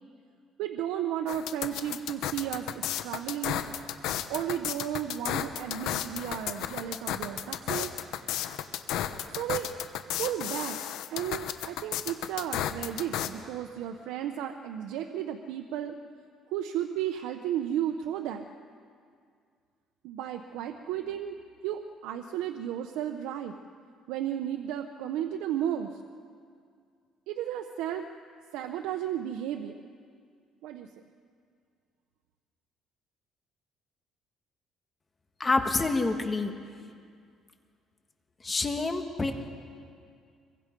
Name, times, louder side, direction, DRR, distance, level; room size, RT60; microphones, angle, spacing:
voice 1, 0.6-3.7 4.3-7.9 9.4-9.7 10.2-10.8 11.1-16.0 16.5-18.4 20.0-21.4 21.6-23.5 24.1-25.9 27.3-28.0 28.5-29.9 30.6-30.9, right 10 dB, 90° right, 5 dB, 0.9 m, -33 dB
sound 1, 1.3-13.3, left 11 dB, 80° left, 1.2 m, -33 dB
voice 2, 35.4-36.5 38.4-39.3, left 3 dB, 25° left, 5 dB, 1.7 m, -27 dB
26.0 x 23.0 x 5.3 m, 2.2 s
cardioid pair, 115°, 0 cm